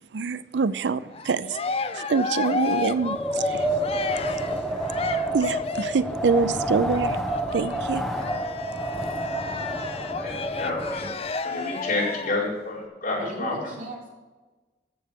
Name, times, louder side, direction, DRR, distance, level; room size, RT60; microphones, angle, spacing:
voice 1, 0.1-1.6 1.9-3.7 5.3-7.2 7.5-8.0, right 4 dB, 85° right, 0.5 m, -25 dB
Cheering, 1.1-6.1 6.9-12.4, left 4 dB, 35° left, 0.6 m, -32 dB
Wind, 2.9-11.3, right 1 dB, ahead, 1.1 m, -29 dB
voice 2, 10.2-11.1 11.4-13.5, left 2 dB, 50° left, 4.6 m, -29 dB
voice 3, 13.2-14.1, right 1 dB, 50° right, 3.7 m, -36 dB
13.0 x 7.9 x 5.2 m
head